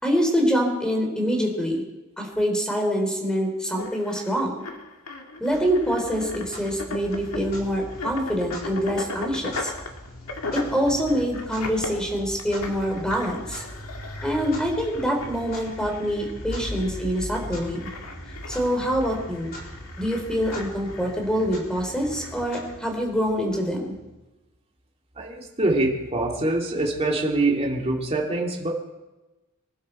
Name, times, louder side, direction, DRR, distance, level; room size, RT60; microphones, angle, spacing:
voice 1, 0.0-1.8 2.2-4.6 5.4-9.7 10.5-13.6 14.2-17.9 18.5-19.5 20.0-23.9, equal, 5° left, 2 dB, 3.5 m, -25 dB
sound 1, 3.8-22.8, left 3 dB, 70° left, 2.1 m, -39 dB
Clock, 5.5-24.2, left 1 dB, 45° left, 4.6 m, -40 dB
voice 2, 25.2-28.7, right 2 dB, 30° right, -1 dB, 2.7 m, -24 dB
25.0 x 12.0 x 4.5 m, 1.1 s
head